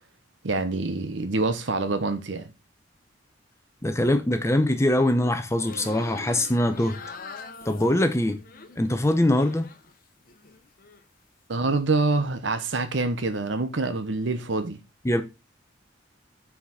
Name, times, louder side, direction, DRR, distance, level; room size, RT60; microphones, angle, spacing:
voice 1, 0.4-2.5 11.5-14.8, right 3 dB, 80° right, 0.9 m, -26 dB
voice 2, 3.8-7.0 7.7-8.4 8.8-9.7 15.0-15.2, left 1 dB, 15° left, 0.7 m, -23 dB
sound 1, 5.5-9.9 10.3-11.0, left 4 dB, 50° left, 0.9 m, -43 dB
6.1 x 4.9 x 5.7 m
head